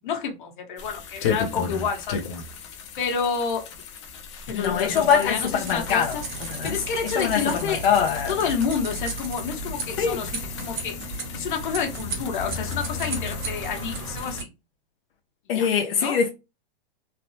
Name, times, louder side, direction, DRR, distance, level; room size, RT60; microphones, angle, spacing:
voice 1, 0.0-2.2 3.0-3.7 4.5-6.2 6.6-7.8 8.3-11.0 11.3-14.5 15.5-15.7 16.0-16.2, left 6 dB, 55° left, 1.0 m, -29 dB
sound 1, 0.8-14.4, left 6 dB, 30° left, 0.4 m, -36 dB
voice 2, 4.5-6.2 6.5-6.8 7.0-8.4 10.0-10.2 15.5-16.3, left 7 dB, 75° left, 0.6 m, -23 dB
sound 2, 4.6-14.4, right 1 dB, 55° right, 1.0 m, -34 dB
3.2 x 2.0 x 2.6 m
supercardioid pair, 175°, 29 cm